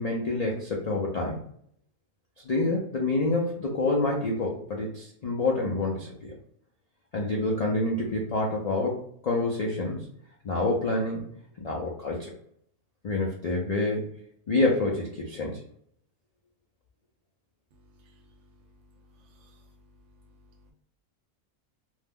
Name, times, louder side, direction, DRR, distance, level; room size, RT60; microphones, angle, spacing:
voice 1, 0.0-1.4 2.4-6.3 7.1-10.0 10.4-11.2 11.6-12.3 13.0-14.1 14.5-15.6, left 2 dB, 75° left, -2 dB, 0.3 m, -27 dB
voice 2, 17.8-18.7 19.1-19.8 20.2-20.7, left 1 dB, 65° right, 2 dB, 0.8 m, -59 dB
2.6 x 2.1 x 3.4 m, 0.67 s
omnidirectional pair, 1.4 m